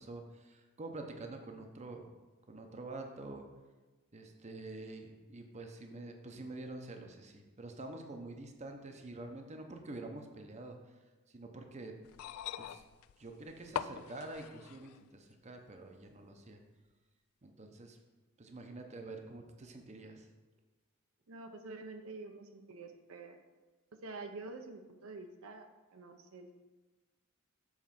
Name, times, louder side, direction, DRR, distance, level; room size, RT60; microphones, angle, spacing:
voice 1, 0.0-2.1 2.5-3.5 4.1-11.0 11.3-11.9 12.6-12.8 13.2-16.6 17.4-18.0 18.4-20.3, right 2 dB, 30° right, 4 dB, 0.7 m, -47 dB
sound 1, 12.0-15.0 16.1-16.2, left 9 dB, 85° left, 0.3 m, -42 dB
voice 2, 21.3-23.4 24.0-26.5, right 3 dB, 70° right, 6 dB, 0.6 m, -47 dB
7.2 x 4.2 x 5.7 m, 1.2 s
head